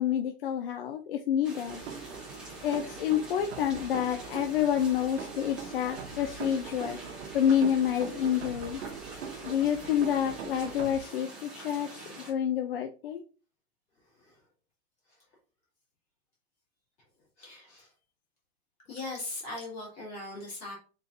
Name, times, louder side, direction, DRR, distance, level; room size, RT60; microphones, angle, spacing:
voice 1, 0.0-1.8 2.6-7.0 7.3-8.8 9.4-13.2, left 9 dB, 60° left, 5 dB, 0.5 m, -28 dB
sound 1, 1.4-12.3, right 2 dB, 5° right, 0.5 m, -46 dB
sound 2, 1.7-11.0, right 6 dB, 90° right, 0.9 m, -42 dB
voice 2, 14.1-14.4 15.1-15.2 17.4-17.9 18.8-20.7, left 2 dB, 20° left, -4 dB, 2.0 m, -40 dB
4.2 x 3.7 x 2.6 m, 0.37 s
supercardioid pair, 175°, 33 cm